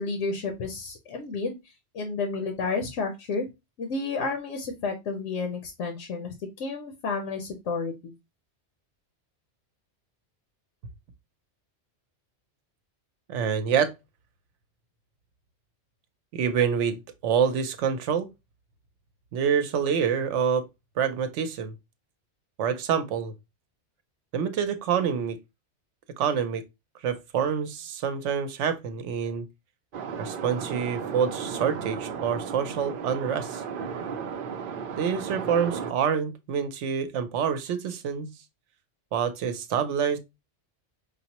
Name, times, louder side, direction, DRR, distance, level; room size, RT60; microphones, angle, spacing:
voice 1, 0.0-1.6 1.9-3.4 3.8-8.1, left 4 dB, 90° left, 1.1 m, -31 dB
voice 2, 13.3-13.9 16.3-18.3 19.3-20.7 21.0-21.7 22.6-23.3 24.3-25.4 26.2-26.6 27.0-29.4 30.2-33.6 34.9-38.3 39.1-40.2, right 7 dB, 85° right, 0.9 m, -27 dB
sound 1, 29.9-35.9, right 6 dB, 60° right, 0.6 m, -34 dB
5.2 x 2.0 x 2.8 m
omnidirectional pair, 1.2 m